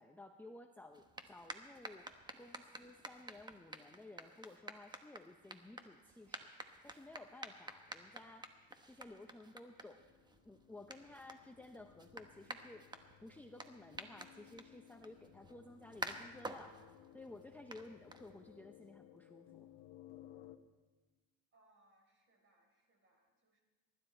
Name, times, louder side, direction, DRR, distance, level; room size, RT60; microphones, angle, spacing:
voice 1, 0.0-6.5 6.8-8.5 8.9-10.1 10.4-12.9 13.2-16.8 17.1-19.7, left 2 dB, 5° left, 5 dB, 0.6 m, -55 dB
sound 1, 0.9-18.7, right 2 dB, 10° right, 1.0 m, -51 dB
sound 2, 7.5-20.6, left 13 dB, 90° left, 1.0 m, -61 dB
voice 2, 21.5-23.6, right 1 dB, 35° right, 3 dB, 4.0 m, -72 dB
23.5 x 12.5 x 4.3 m, 1.3 s
cardioid pair, 125°, 35 cm